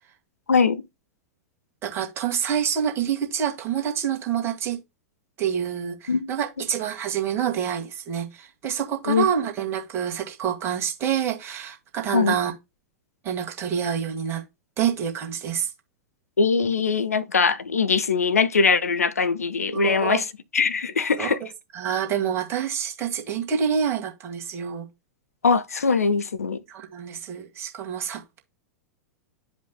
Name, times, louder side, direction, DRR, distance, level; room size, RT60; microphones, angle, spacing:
voice 1, 0.5-0.8 6.1-6.3 9.1-9.3 12.1-12.4 16.4-20.3 20.5-21.4 25.4-26.6, left 5 dB, 75° left, 0.6 m, -21 dB
voice 2, 1.8-4.8 5.4-12.5 13.2-14.4 14.8-15.7 19.7-20.2 21.2-21.4 21.7-24.9 26.7-28.4, right 8 dB, 30° right, 1.8 m, -27 dB
9.7 x 5.1 x 2.2 m
figure-of-eight pair, 95°, 8 cm